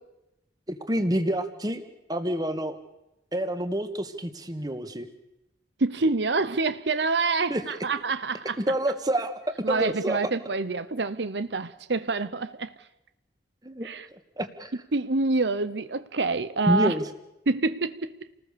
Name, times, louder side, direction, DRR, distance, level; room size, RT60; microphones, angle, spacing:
voice 1, 0.7-1.8 2.1-2.8 3.3-5.1 7.5-7.6 8.7-9.4 9.7-10.2 13.6-13.9 14.4-14.7 16.7-17.0, right 1 dB, 20° right, 1.8 m, -27 dB
voice 2, 5.8-8.6 9.6-12.7 13.8-14.1 14.9-16.9 17.5-18.2, right 3 dB, 75° right, 0.9 m, -27 dB
29.0 x 19.5 x 6.9 m
head